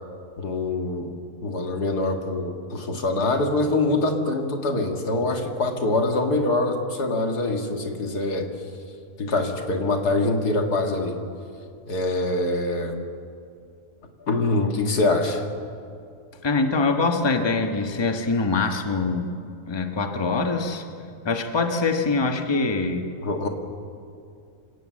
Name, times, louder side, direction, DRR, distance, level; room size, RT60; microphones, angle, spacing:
voice 1, 0.4-8.5 9.2-11.2 11.9-13.0 14.3-15.5 23.2-23.5, left 2 dB, 80° left, 3 dB, 2.4 m, -24 dB
voice 2, 16.4-19.3 19.7-20.8 21.2-23.1, left 3 dB, 20° left, 4 dB, 1.2 m, -24 dB
26.5 x 17.5 x 7.6 m, 2.4 s
omnidirectional pair, 1.7 m